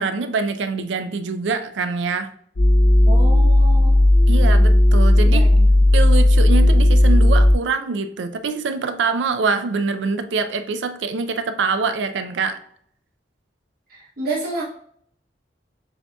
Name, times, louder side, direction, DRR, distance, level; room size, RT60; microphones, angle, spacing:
voice 1, 0.0-2.3 4.3-5.4 5.9-12.6, right 4 dB, 90° right, 10 dB, 0.4 m, -24 dB
sound 1, 2.6-7.5, left 1 dB, 70° left, 0.6 m, -13 dB
voice 2, 3.0-4.0 5.3-5.8 13.9-14.6, right 2 dB, 55° right, -4 dB, 0.8 m, -29 dB
7.0 x 2.7 x 2.2 m, 0.65 s
head